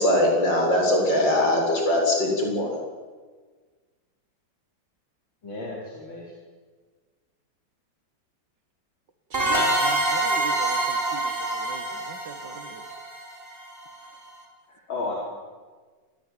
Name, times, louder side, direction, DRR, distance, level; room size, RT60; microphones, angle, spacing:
voice 1, 0.0-2.8, left 1 dB, 65° left, 1 dB, 7.7 m, -21 dB
voice 2, 5.4-6.3 14.7-15.1, left 3 dB, 85° left, -3 dB, 5.4 m, -33 dB
sound 1, 9.3-13.8, right 2 dB, 25° right, 5.2 m, -26 dB
voice 3, 9.3-12.8, right 4 dB, 65° right, 7 dB, 2.5 m, -41 dB
28.5 x 20.5 x 9.4 m, 1.4 s
omnidirectional pair, 2.1 m